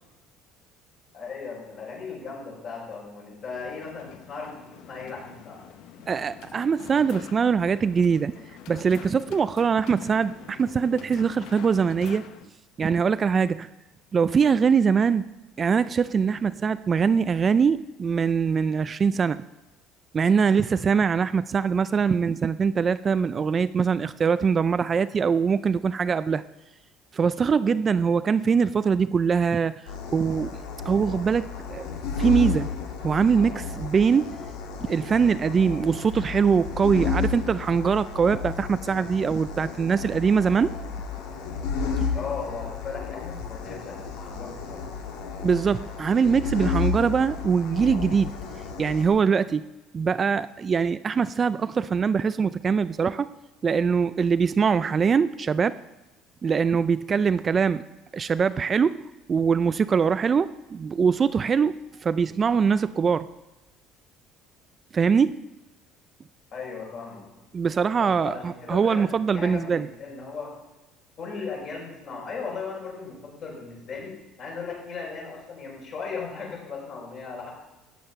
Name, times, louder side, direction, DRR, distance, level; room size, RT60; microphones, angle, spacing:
voice 1, 1.1-5.6 42.1-44.8 66.5-67.3 67.9-70.5 71.2-74.1 74.4-77.5, left 5 dB, 45° left, -3 dB, 5.8 m, -37 dB
sound 1, 3.5-12.5, left 9 dB, 65° left, 0.9 m, -46 dB
voice 2, 6.1-12.2 12.8-13.7 14.1-15.3 15.6-19.4 20.1-26.4 27.1-29.8 30.1-31.9 32.2-32.7 33.0-34.3 34.8-40.8 42.0-42.1 45.4-48.3 48.8-49.7 49.9-53.3 53.6-55.8 56.4-57.8 58.1-59.0 59.3-63.3 64.9-65.4 67.5-69.9, right 6 dB, 30° right, 14 dB, 0.3 m, -23 dB
sound 2, 29.9-49.1, left 5 dB, 85° left, 1.8 m, -32 dB
14.0 x 9.3 x 5.6 m, 1.0 s
cardioid pair, 135°, 0 cm